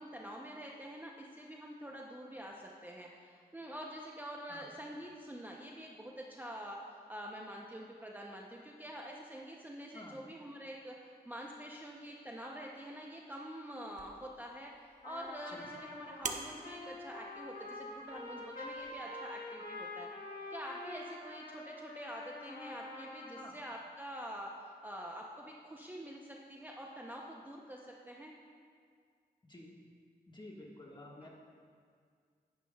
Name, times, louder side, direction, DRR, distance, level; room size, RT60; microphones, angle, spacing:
voice 1, 0.0-14.7 15.0-20.1 20.5-28.3 31.2-31.3, equal, 10° right, -1 dB, 0.6 m, -46 dB
sound 1, 13.9-18.9, right 4 dB, 45° right, 0.6 m, -48 dB
Trumpet, 15.0-23.5, left 2 dB, 60° left, 1.6 m, -46 dB
voice 2, 30.3-31.3, left 1 dB, 25° left, -2 dB, 1.5 m, -51 dB
10.5 x 9.7 x 2.3 m, 2.1 s
wide cardioid pair, 80°, 17 cm